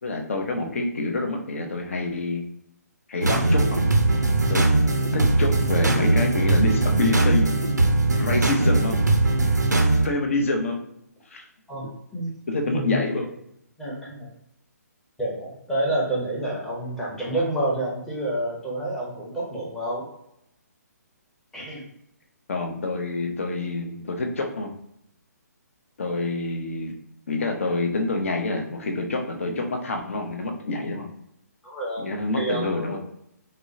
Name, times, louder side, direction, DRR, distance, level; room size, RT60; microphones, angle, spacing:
voice 1, 0.0-2.5 3.1-3.8 4.5-4.7 5.1-7.6 8.1-9.0 9.9-10.8 11.3-11.5 12.5-13.3 22.5-24.7 26.0-26.9 27.3-31.1 32.0-33.0, left 2 dB, 50° left, 4 dB, 0.5 m, -27 dB
sound 1, 3.2-10.1, right 2 dB, 80° right, 0.5 m, -20 dB
voice 2, 11.7-12.3 12.7-13.0 13.8-14.3 15.2-20.1 21.5-21.8 31.6-32.1 32.4-33.1, right 1 dB, 5° left, -6 dB, 0.6 m, -29 dB
3.6 x 2.1 x 2.5 m, 0.78 s
figure-of-eight pair, 135°, 9 cm